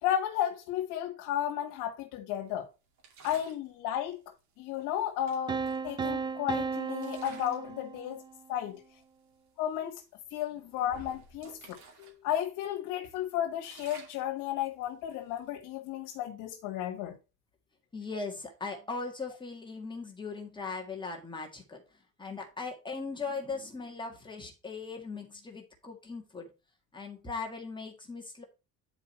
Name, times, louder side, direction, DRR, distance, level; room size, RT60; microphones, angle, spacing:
voice 1, 0.0-2.7 3.2-4.2 4.6-8.2 8.5-8.8 9.6-10.0 10.3-11.6 12.0-17.2, left 11 dB, 85° left, 1.6 m, -33 dB
sound 1, 3.0-3.7 4.8-4.9 5.3-6.5 6.9-7.7 8.1-8.4 9.0-9.1 9.5-9.7 10.2-12.2 12.5-12.6 13.1-15.6, right 5 dB, 65° right, 2.7 m, -53 dB
sound 2, 5.5-8.4, right 5 dB, 15° right, 0.4 m, -35 dB
voice 2, 17.9-21.8 22.2-26.5 26.9-28.4, left 4 dB, 15° left, 1.7 m, -39 dB
9.8 x 4.8 x 4.3 m
cardioid pair, 135°, 31 cm